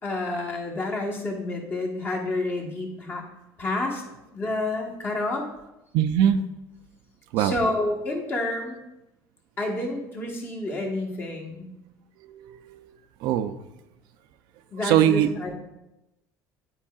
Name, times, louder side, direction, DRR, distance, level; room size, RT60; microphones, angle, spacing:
voice 1, 0.0-3.2 3.6-4.0 4.3-5.5 7.4-8.8 9.6-11.7 14.7-15.5, left 2 dB, 30° left, 0 dB, 1.2 m, -29 dB
voice 2, 5.9-6.4 7.3-7.5 12.4-12.5 13.2-13.5 14.8-15.3, right 10 dB, 65° right, 10 dB, 0.4 m, -20 dB
9.8 x 4.6 x 2.4 m, 0.94 s
cardioid pair, 150°, 8 cm